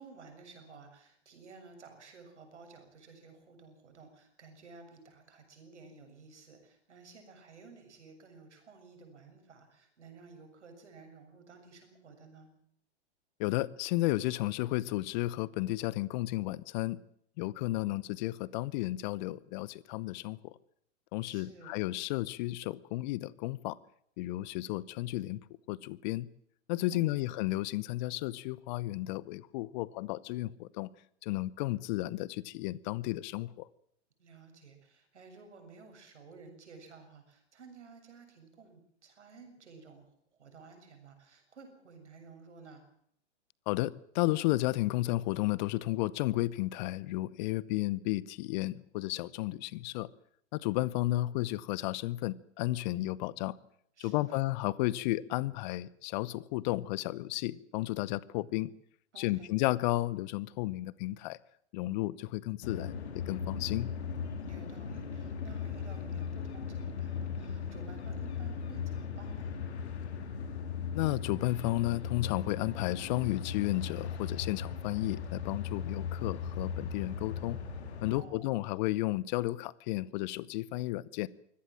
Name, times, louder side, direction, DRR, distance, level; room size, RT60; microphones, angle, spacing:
voice 1, 0.0-12.5 21.2-21.8 26.9-27.4 34.2-40.1 40.4-42.8 54.0-54.5 59.1-59.6 64.5-69.8 78.1-78.5, right 4 dB, 75° right, 7.3 m, -54 dB
voice 2, 13.4-17.0 17.4-20.5 21.1-23.8 24.2-25.4 25.7-26.3 26.7-30.9 31.2-33.7 43.7-50.1 50.5-53.6 54.0-58.7 59.2-61.4 61.7-62.9 63.3-63.9 70.9-77.6 78.0-81.3, left 18 dB, 40° left, 0.8 m, -33 dB
sound 1, 62.6-78.2, left 6 dB, 70° left, 4.1 m, -38 dB
24.0 x 17.0 x 7.5 m
hypercardioid pair, 110°, 35 cm